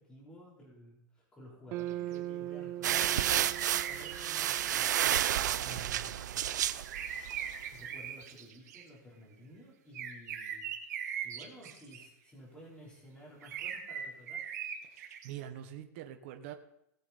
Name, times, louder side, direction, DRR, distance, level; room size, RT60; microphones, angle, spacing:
voice 1, 0.0-4.9 5.6-6.4 7.7-10.7 11.2-14.5, equal, 10° left, -4 dB, 3.5 m, -53 dB
sound 1, 1.7-6.0, right 14 dB, 25° right, 0.4 m, -42 dB
sound 2, 1.8-2.2 3.5-5.4 6.8-8.8 9.9-12.0 13.4-15.3, right 8 dB, 65° right, 2.0 m, -41 dB
sound 3, 2.8-7.5, right 11 dB, 90° right, 0.6 m, -31 dB
voice 2, 14.8-16.5, right 11 dB, 45° right, 6 dB, 1.0 m, -45 dB
18.0 x 7.1 x 4.1 m, 0.80 s
supercardioid pair, 165°, 9 cm